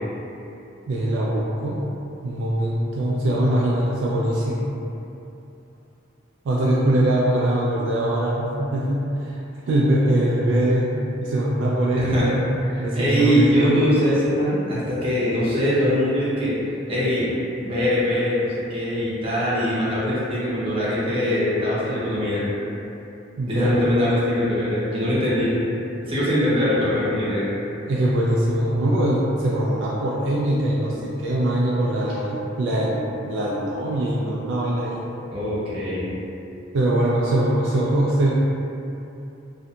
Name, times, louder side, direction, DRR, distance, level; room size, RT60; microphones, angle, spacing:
voice 1, 0.9-1.8 2.2-4.7 6.5-9.4 9.7-10.9 11.2-12.4 12.8-13.8 23.4-23.8 27.9-35.0 36.7-38.4, right 1 dB, 65° right, -5 dB, 0.3 m, -22 dB
voice 2, 12.0-12.3 12.9-16.6 16.9-17.3 17.6-22.4 23.5-25.5 26.0-27.5 35.3-36.1, equal, 30° right, -10 dB, 0.7 m, -22 dB
2.7 x 2.5 x 2.3 m, 2.8 s
head